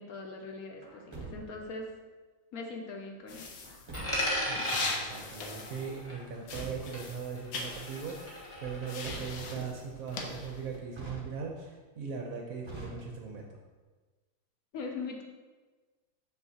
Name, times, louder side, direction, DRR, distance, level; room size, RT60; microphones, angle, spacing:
voice 1, 0.0-1.9 2.5-3.5 14.7-15.2, left 3 dB, 60° left, 2 dB, 1.0 m, -41 dB
Truck, 0.8-1.8 3.6-4.5 6.1-7.1 8.7-9.7 10.9-11.8 12.6-13.5, right 3 dB, 45° right, 0.3 m, -46 dB
sound 1, 3.3-6.2 6.4-10.8, left 3 dB, 75° left, 1.5 m, -41 dB
Coin (dropping), 3.9-6.7 6.9-8.9, equal, 20° left, 1.1 m, -36 dB
voice 2, 4.5-8.4 8.6-13.5, right 6 dB, 65° right, 0 dB, 0.9 m, -39 dB
6.5 x 6.5 x 2.8 m, 1.3 s
omnidirectional pair, 2.2 m